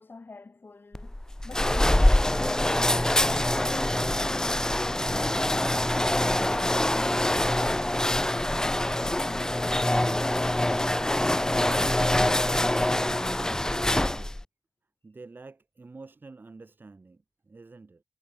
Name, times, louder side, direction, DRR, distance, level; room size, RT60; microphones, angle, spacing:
voice 1, 0.0-3.2 3.6-6.4 6.9-11.6, left 3 dB, 45° left, 6.0 m, -47 dB
sound 1, 0.9-14.4, left 1 dB, 10° left, 1.1 m, -25 dB
voice 2, 13.0-14.4 15.0-18.0, right 3 dB, 40° right, 2.2 m, -48 dB
wide cardioid pair, 90°, 5 cm